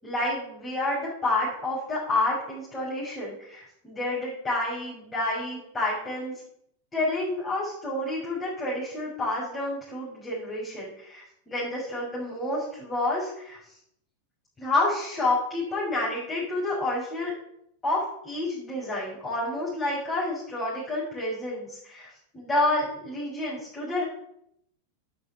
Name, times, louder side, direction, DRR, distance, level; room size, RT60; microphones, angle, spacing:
voice 1, 0.0-6.3 6.9-13.6 14.6-17.3 17.8-24.0, left 2 dB, 15° left, -9 dB, 7.0 m, -29 dB
10.5 x 9.2 x 8.9 m, 0.75 s
figure-of-eight pair, 90°, 0 cm